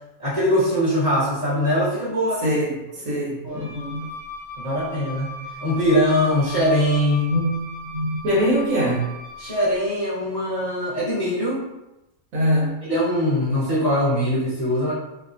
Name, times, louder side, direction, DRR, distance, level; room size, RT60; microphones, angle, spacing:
voice 1, 0.2-2.4 3.0-3.1 3.4-3.6 4.6-5.3 5.6-7.3 9.4-11.6 12.8-14.9, equal, 20° left, -10 dB, 0.8 m, -22 dB
voice 2, 2.4-4.1 7.3-9.1 12.3-12.9, equal, 80° right, -5 dB, 1.4 m, -23 dB
Wind instrument woodwind instrument, 3.5-9.8, left 1 dB, 50° right, 0.8 m, -38 dB
3.2 x 2.1 x 2.4 m, 0.95 s
omnidirectional pair, 1.4 m